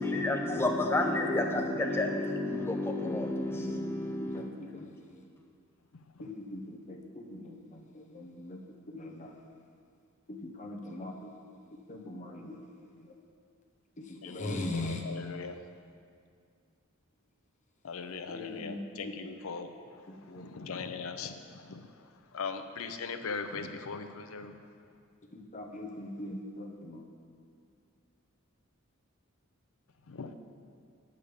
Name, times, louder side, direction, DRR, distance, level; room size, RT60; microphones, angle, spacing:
voice 1, 0.0-4.5, left 2 dB, 10° left, 3 dB, 0.3 m, -30 dB
voice 2, 1.4-2.4 3.0-3.3 3.6-5.3 6.2-8.6 8.9-9.4 10.3-11.3 11.9-12.6 13.0-13.1 14.0-15.0 18.3-19.1 20.1-20.8 25.3-27.1, left 1 dB, 35° left, 1 dB, 0.9 m, -41 dB
voice 3, 5.9-6.3 14.2-15.7 17.8-24.7 30.1-30.3, left 5 dB, 85° left, 8 dB, 0.6 m, -40 dB
8.4 x 5.3 x 6.6 m, 2.3 s
head